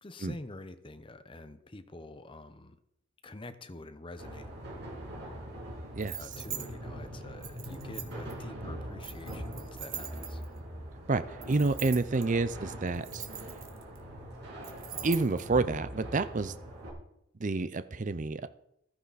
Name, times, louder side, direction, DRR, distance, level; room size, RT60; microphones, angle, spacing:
voice 1, 0.0-2.8 3.2-4.5 6.2-10.4, left 2 dB, 25° left, 9 dB, 0.8 m, -46 dB
sound 1, 4.2-16.9, right 1 dB, 55° right, 6.5 m, -42 dB
sound 2, 6.0-6.7 7.4-8.3 9.0-10.6 11.4-12.2 12.9-14.0 14.6-15.4, right 10 dB, 70° right, 1.7 m, -42 dB
voice 2, 11.1-13.3 15.0-16.5 17.4-18.5, right 3 dB, 35° right, 13 dB, 0.5 m, -29 dB
14.5 x 13.0 x 4.1 m, 0.78 s
head